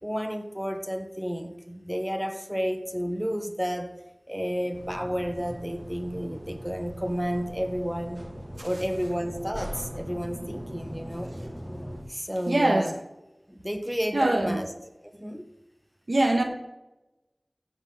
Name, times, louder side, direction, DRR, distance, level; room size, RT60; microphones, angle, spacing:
voice 1, 0.0-3.9 4.3-8.2 8.6-11.3 12.1-13.0 13.5-14.7 15.0-15.5, equal, 5° right, 7 dB, 1.1 m, -31 dB
sound 1, 4.7-12.0, equal, 25° right, 2.0 m, -40 dB
voice 2, 12.5-12.9 14.1-14.6 16.1-16.4, right 1 dB, 85° right, 3 dB, 1.6 m, -23 dB
15.5 x 7.0 x 3.9 m, 0.97 s
wide cardioid pair, 45°, 0 cm